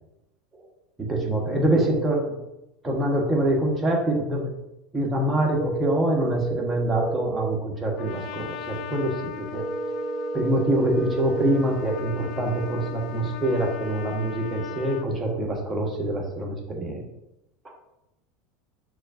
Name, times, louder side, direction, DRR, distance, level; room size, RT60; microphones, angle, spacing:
voice 1, 1.0-2.4 2.8-4.5 4.9-9.6 10.3-17.0, right 1 dB, 20° right, -1 dB, 1.2 m, -25 dB
sound 1, 5.6-7.6 9.6-11.6, right 3 dB, 60° right, 0.5 m, -31 dB
Trumpet, 8.0-15.1, left 9 dB, 55° left, 0.4 m, -38 dB
6.2 x 2.4 x 2.6 m, 0.91 s
hypercardioid pair, 95°, 0 cm